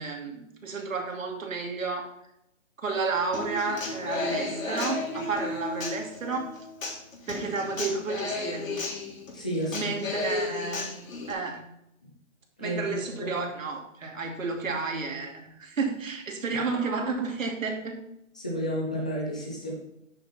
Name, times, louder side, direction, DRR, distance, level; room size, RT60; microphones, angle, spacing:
voice 1, 0.0-2.2 2.8-6.6 7.3-8.9 9.7-11.0 11.3-11.6 12.6-18.0, right 4 dB, 80° right, 2 dB, 2.7 m, -31 dB
Human voice / Acoustic guitar, 3.3-11.3, left 3 dB, 90° left, 3.3 m, -34 dB
voice 2, 9.3-10.1 12.6-12.9 13.2-13.3 18.3-19.7, equal, 5° left, -4 dB, 0.4 m, -31 dB
11.0 x 6.6 x 4.2 m, 0.80 s
hypercardioid pair, 150°, 39 cm